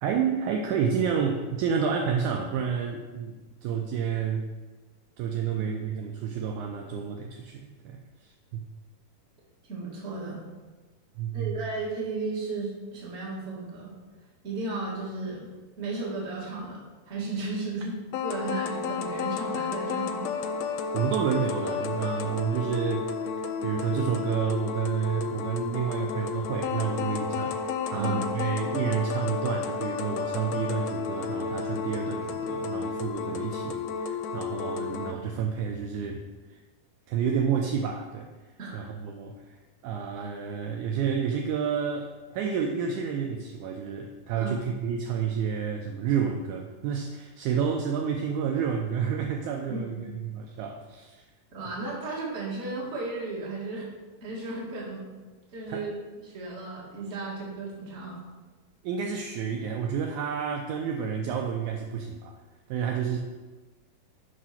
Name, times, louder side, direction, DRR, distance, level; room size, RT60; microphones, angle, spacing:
voice 1, 0.0-3.3 3.6-4.5 5.2-8.7 11.2-11.6 20.9-23.1 23.6-27.6 27.9-36.2 36.5-36.6 37.1-38.3 38.7-39.6 39.8-51.2 55.7-55.9 58.8-62.3 62.7-63.2, right 7 dB, 80° right, 3 dB, 1.8 m, -30 dB
voice 2, 9.7-10.4 11.3-13.9 14.4-15.5 15.8-17.9 18.2-20.2 27.9-28.3 38.6-38.9 44.3-44.5 49.7-50.1 51.5-53.9 54.2-55.0 55.5-55.9 56.2-58.2, right 3 dB, 30° right, -4 dB, 1.3 m, -34 dB
sound 1, 18.1-35.1, left 5 dB, 80° left, 2.1 m, -32 dB
6.3 x 5.1 x 5.7 m, 1.3 s
omnidirectional pair, 3.9 m